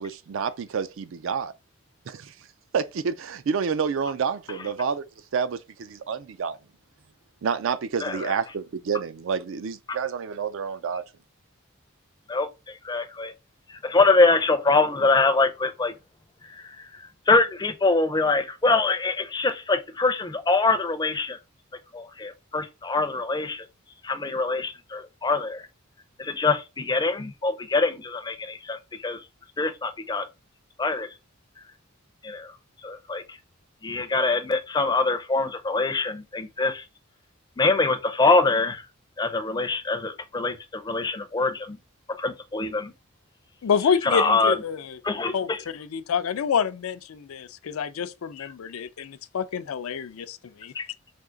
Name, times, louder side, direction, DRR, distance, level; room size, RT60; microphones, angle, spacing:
voice 1, 0.0-1.5 2.1-2.3 2.7-5.0 5.3-6.6 7.4-11.0, right 6 dB, 65° right, 0.4 m, -29 dB
voice 2, 8.0-8.3 9.9-10.0 12.3-13.3 13.7-15.9 16.5-16.9 17.3-21.4 21.9-23.7 24.0-25.7 26.2-29.2 29.6-30.3 30.8-31.1 32.2-32.6 32.8-33.4 33.8-36.8 37.6-38.9 39.2-41.8 42.1-42.9 44.0-44.5 45.0-45.6 48.4-48.5 50.7-50.9, left 3 dB, 20° left, 0.4 m, -24 dB
voice 3, 43.6-45.0 45.3-50.7, left 6 dB, 80° left, 0.4 m, -28 dB
3.5 x 2.8 x 3.8 m
head